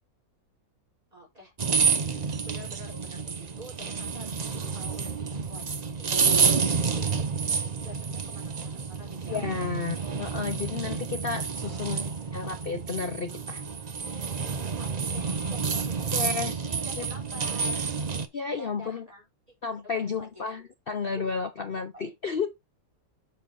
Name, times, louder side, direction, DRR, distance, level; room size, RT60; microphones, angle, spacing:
voice 1, 1.1-9.8 11.6-12.1 14.7-17.9 18.6-19.5 19.8-20.6 21.2-21.3 21.7-22.5, equal, 20° right, 4.6 m, -49 dB
sound 1, 1.6-18.3, right 5 dB, 60° right, 0.4 m, -29 dB
voice 2, 9.3-12.1 12.3-13.6 16.1-16.5 18.3-19.0 19.6-22.5, left 5 dB, 70° left, 0.5 m, -32 dB
7.6 x 5.7 x 4.1 m
omnidirectional pair, 1.9 m